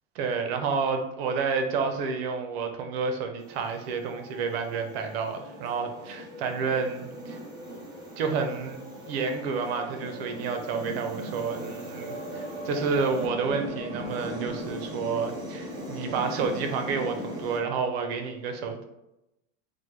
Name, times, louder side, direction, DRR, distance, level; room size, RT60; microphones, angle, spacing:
voice 1, 0.1-7.4 8.2-8.8 9.1-18.8, right 5 dB, 85° right, 5 dB, 0.6 m, -30 dB
sound 1, 3.4-17.6, right 1 dB, 15° right, 0.4 m, -38 dB
3.1 x 2.1 x 3.1 m, 0.90 s
supercardioid pair, 160°, 30 cm